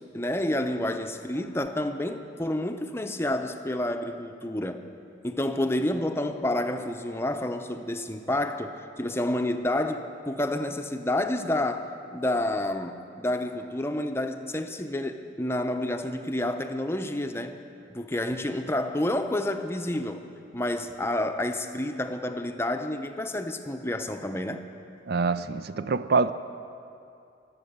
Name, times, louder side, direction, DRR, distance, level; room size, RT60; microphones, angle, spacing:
voice 1, 0.1-4.9 5.2-17.6 17.9-24.7, left 1 dB, 15° left, 6 dB, 0.6 m, -29 dB
voice 2, 25.1-26.3, right 4 dB, 55° right, 13 dB, 0.4 m, -25 dB
24.0 x 8.7 x 6.7 m, 2.6 s
head